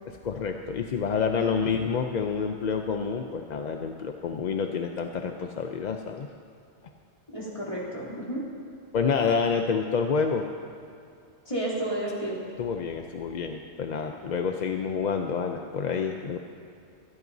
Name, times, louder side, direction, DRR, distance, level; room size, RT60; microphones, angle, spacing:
voice 1, 0.1-6.3 8.9-10.5 12.6-16.4, left 5 dB, 50° left, 4 dB, 0.6 m, -28 dB
voice 2, 7.3-8.4 11.4-12.4, right 1 dB, 30° left, -7 dB, 3.1 m, -31 dB
25.0 x 12.0 x 2.7 m, 2.5 s
omnidirectional pair, 1.2 m